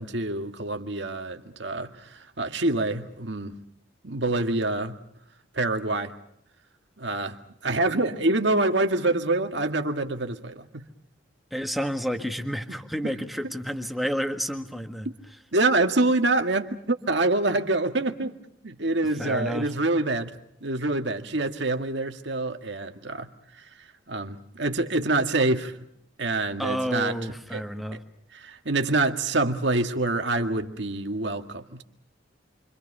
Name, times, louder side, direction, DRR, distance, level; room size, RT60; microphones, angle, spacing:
voice 1, 0.0-3.6 4.0-5.0 5.5-6.1 7.0-10.8 12.7-12.8 13.0-13.1 15.5-18.4 18.6-20.3 20.6-23.3 23.6-23.7 24.1-25.7 26.2-27.2 27.5-27.6 27.9-28.0 28.3-31.8, right 2 dB, 65° right, 1.9 m, -26 dB
voice 2, 11.5-15.1 19.2-19.7 26.6-28.0, equal, ahead, 1.7 m, -30 dB
28.5 x 25.5 x 5.6 m
head